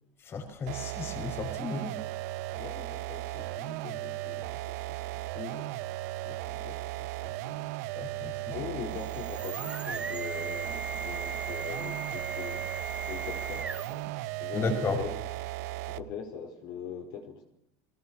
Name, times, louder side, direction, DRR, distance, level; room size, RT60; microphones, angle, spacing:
voice 1, 0.2-2.0 8.0-8.7 14.5-15.0, left 4 dB, 30° left, 6 dB, 6.0 m, -34 dB
sound 1, 0.7-16.2, right 17 dB, 80° right, 1.0 m, -36 dB
voice 2, 2.5-5.8 6.2-7.7 8.5-12.6 13.1-13.7 14.4-15.1 15.9-17.4, left 7 dB, 55° left, 4 dB, 5.2 m, -42 dB
sound 2, 8.8-14.1, right 4 dB, 10° right, 1.2 m, -38 dB
22.5 x 19.0 x 7.3 m, 0.76 s
cardioid pair, 155°, 8 cm